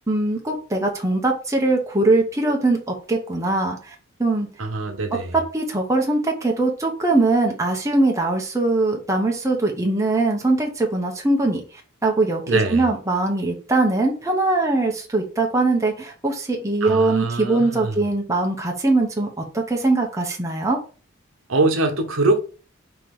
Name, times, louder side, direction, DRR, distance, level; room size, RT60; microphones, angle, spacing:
voice 1, 0.1-3.9 4.2-4.5 5.3-11.6 12.0-20.8, right 2 dB, 15° right, 0.8 m, -21 dB
voice 2, 4.6-5.4 12.5-12.9 16.8-18.0 21.5-22.4, right 2 dB, 75° right, 0.9 m, -23 dB
4.6 x 2.9 x 3.7 m
head